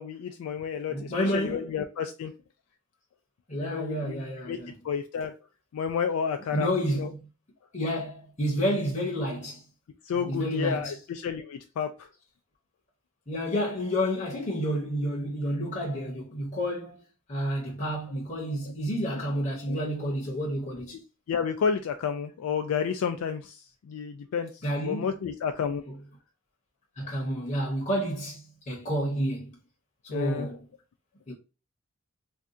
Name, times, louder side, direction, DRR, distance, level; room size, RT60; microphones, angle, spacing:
voice 1, 0.0-2.3 3.6-4.2 4.5-4.6 4.8-5.3 5.7-7.1 9.2-9.3 10.0-12.1 19.7-19.8 21.3-25.8 30.1-30.5, left 7 dB, 90° left, 0.3 m, -31 dB
voice 2, 0.9-1.6 3.5-4.7 6.5-7.3 7.7-9.6 10.3-10.9 13.3-17.0 17.3-21.0 24.6-25.1 25.9-26.0 27.0-29.6 30.0-30.7 31.3-31.4, equal, 35° left, 0.7 m, -30 dB
2.6 x 2.2 x 3.6 m
head